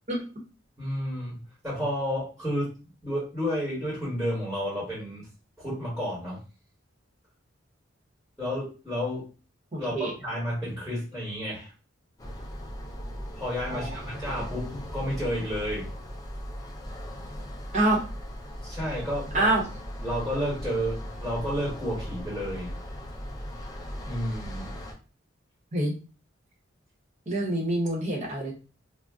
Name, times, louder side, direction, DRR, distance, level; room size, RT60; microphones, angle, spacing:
voice 1, 0.8-2.7 3.0-5.3 5.6-6.4 8.4-9.3 9.8-11.7 13.3-15.9 18.6-19.5 20.0-22.7 24.0-24.7, equal, ahead, -6 dB, 1.1 m, -31 dB
voice 2, 9.7-10.1 13.7-13.9 17.7-18.0 19.3-19.6 25.7-25.9 27.3-28.5, right 2 dB, 35° right, -2 dB, 0.9 m, -26 dB
sound 1, 12.2-24.9, equal, 20° left, 0.5 m, -38 dB
2.5 x 2.0 x 3.4 m, 0.34 s
head